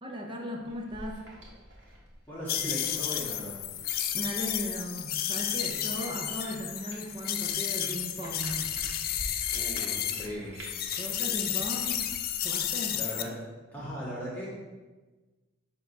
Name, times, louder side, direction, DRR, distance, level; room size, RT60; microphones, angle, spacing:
voice 1, 0.0-1.2 4.1-8.7 11.0-12.1 12.4-13.0, equal, 25° right, 1 dB, 0.7 m, -37 dB
sound 1, 0.6-13.0, equal, 60° right, 1.5 m, -48 dB
voice 2, 2.3-3.6 9.5-10.6 12.9-13.3 13.7-14.5, equal, 10° left, -9 dB, 1.7 m, -38 dB
sound 2, 2.5-10.3 10.6-13.2, left 10 dB, 45° left, 0.3 m, -32 dB
7.5 x 3.0 x 5.4 m, 1.3 s
head